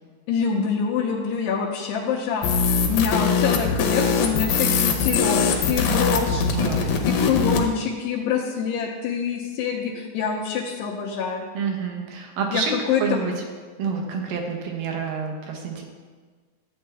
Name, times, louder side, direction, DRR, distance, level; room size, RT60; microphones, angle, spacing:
voice 1, 0.3-11.4 12.5-13.2, left 6 dB, 90° left, -4 dB, 2.9 m, -26 dB
sound 1, 2.4-7.7, left 5 dB, 70° left, 2.4 m, -22 dB
voice 2, 6.5-6.9 11.5-12.7 13.0-13.3 13.8-15.8, right 6 dB, 70° right, 2 dB, 2.5 m, -28 dB
11.5 x 8.5 x 3.4 m, 1.5 s
omnidirectional pair, 4.7 m